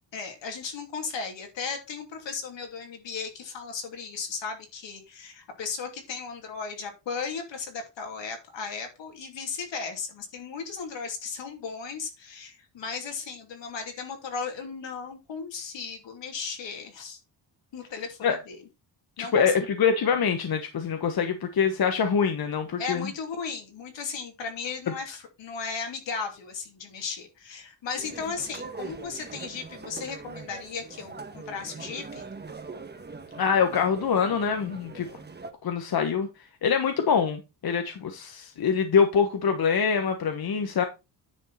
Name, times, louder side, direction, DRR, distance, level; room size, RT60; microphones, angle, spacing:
voice 1, 0.1-17.2 17.7-18.7 19.2-19.5 22.8-32.3, left 5 dB, 80° left, 3.0 m, -36 dB
voice 2, 19.3-23.1 33.4-35.1 35.6-36.3 36.6-40.8, left 6 dB, 55° left, 1.3 m, -24 dB
sound 1, 28.0-35.5, right 4 dB, 25° right, 1.2 m, -42 dB
9.9 x 5.4 x 4.2 m
cardioid pair, 105°, 44 cm